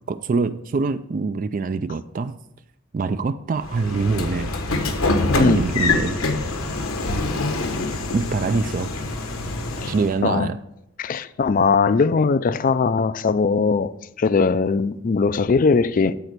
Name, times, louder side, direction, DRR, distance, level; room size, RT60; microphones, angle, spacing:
voice 1, 0.1-2.4 2.9-4.5 5.3-6.2 8.1-8.9 9.9-10.6, right 4 dB, 40° right, 0.3 m, -24 dB
Train / Sliding door, 3.6-10.2, left 2 dB, 80° left, 1.3 m, -25 dB
voice 2, 10.2-10.5 11.0-13.9 14.2-16.1, left 4 dB, 40° left, 0.4 m, -20 dB
12.5 x 4.2 x 6.6 m
head